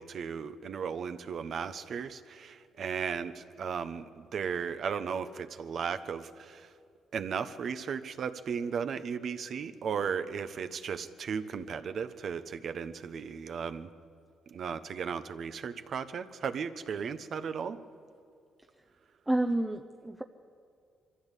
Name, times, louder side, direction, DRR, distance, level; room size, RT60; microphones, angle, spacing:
voice 1, 0.0-6.7 7.1-13.9 14.5-17.8, right 6 dB, 55° right, 10 dB, 1.1 m, -35 dB
voice 2, 19.3-20.2, right 1 dB, 10° right, 5 dB, 0.8 m, -29 dB
23.0 x 14.5 x 8.4 m, 2.4 s
cardioid pair, 90°, 0 cm